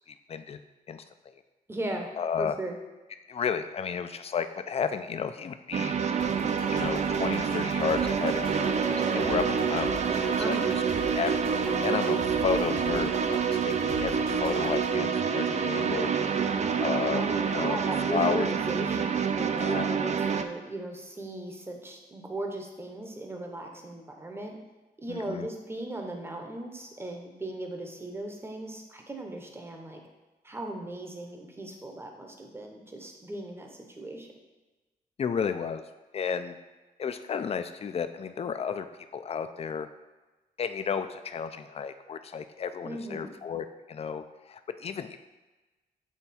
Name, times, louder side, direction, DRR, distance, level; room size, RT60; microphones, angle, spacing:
voice 1, 0.1-0.6 0.9-1.0 2.2-2.5 3.3-6.0 6.7-10.6 11.1-16.1 16.8-17.8 18.1-18.5 19.6-20.0 25.1-25.5 35.2-35.8 36.1-36.6 37.0-38.9 39.1-39.9 40.6-45.2, left 6 dB, 40° left, 10 dB, 0.4 m, -32 dB
voice 2, 1.7-2.1 2.4-2.8 10.4-10.7 17.1-24.6 25.0-30.0 30.4-34.3 42.8-43.3, right 1 dB, 15° right, 3 dB, 0.8 m, -37 dB
sound 1, 5.7-20.4, right 6 dB, 45° right, 0.4 m, -27 dB
sound 2, 6.1-14.9, right 2 dB, 65° right, 1.1 m, -37 dB
7.3 x 3.4 x 4.2 m, 1.2 s
wide cardioid pair, 120°, 16 cm